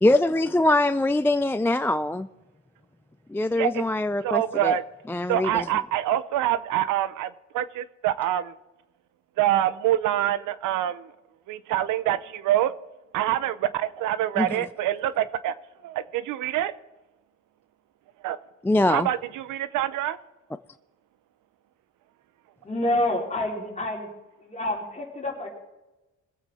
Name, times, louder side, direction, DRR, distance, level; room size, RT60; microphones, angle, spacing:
voice 1, 0.0-2.3 3.3-4.8 5.0-5.7 14.4-14.7 18.6-19.1, left 2 dB, 10° left, 11 dB, 0.3 m, -23 dB
voice 2, 3.5-3.9 4.2-4.8 5.3-8.5 9.4-11.1 11.5-12.7 13.1-15.5 15.8-16.7 18.2-18.4 18.9-20.2, right 12 dB, 90° right, 15 dB, 0.8 m, -25 dB
voice 3, 22.6-24.1 24.4-25.5, left 1 dB, 25° left, -2 dB, 4.0 m, -28 dB
22.0 x 8.2 x 4.2 m, 1.0 s
cardioid pair, 90°, 30 cm